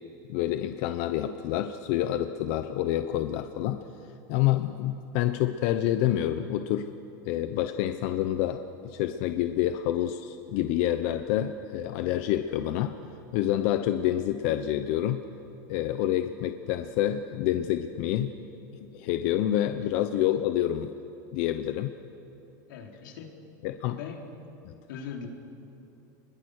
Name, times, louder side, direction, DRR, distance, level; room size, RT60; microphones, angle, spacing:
voice 1, 0.3-3.8 4.3-6.9 7.2-12.9 13.3-15.2 15.7-18.3 18.9-20.9 21.3-21.9 23.6-24.0 24.6-24.7, left 12 dB, 50° left, 9 dB, 0.8 m, -28 dB
voice 2, 22.7-23.3 23.9-24.2 24.9-25.3, left 7 dB, 85° left, 2 dB, 3.6 m, -40 dB
28.0 x 21.5 x 6.5 m, 2.8 s
supercardioid pair, 170°, 10 cm